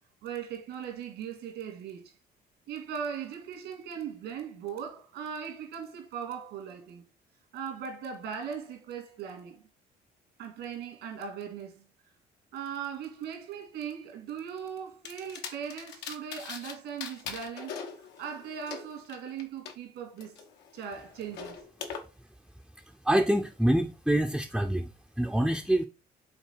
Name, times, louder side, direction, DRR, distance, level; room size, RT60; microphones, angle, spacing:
voice 1, 0.2-2.1 2.7-7.0 7.5-9.7 10.4-11.8 12.5-17.8 18.2-20.4 20.7-21.6, right 7 dB, 85° right, 2.3 m, -39 dB
sound 1, 15.0-16.7 17.0-19.7 20.2-22.0, left 6 dB, 80° left, 1.2 m, -41 dB
voice 2, 23.0-24.9 25.2-25.9, right 1 dB, ahead, 0.5 m, -25 dB
5.9 x 3.8 x 4.6 m
cardioid pair, 110°, 17 cm